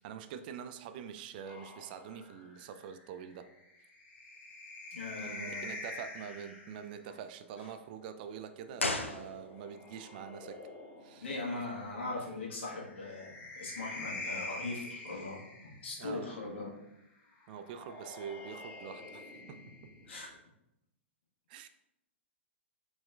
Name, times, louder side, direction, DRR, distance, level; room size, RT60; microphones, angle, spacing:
voice 1, 0.0-3.5 5.2-10.6 11.0-11.3 16.0-16.4 17.5-19.6 21.5-21.7, right 8 dB, 45° right, 10 dB, 0.4 m, -45 dB
sound 1, 1.4-7.0 8.4-11.3 12.7-16.2 17.4-20.4, left 2 dB, 30° left, 1.1 m, -46 dB
voice 2, 4.9-5.7 7.6-7.7 11.2-16.7 20.1-20.3, left 2 dB, 70° left, -3 dB, 1.5 m, -40 dB
sound 2, 8.8-9.9 10.1-10.2, left 2 dB, 90° left, 0.5 m, -35 dB
4.6 x 4.1 x 2.5 m, 0.85 s
figure-of-eight pair, 105°, 7 cm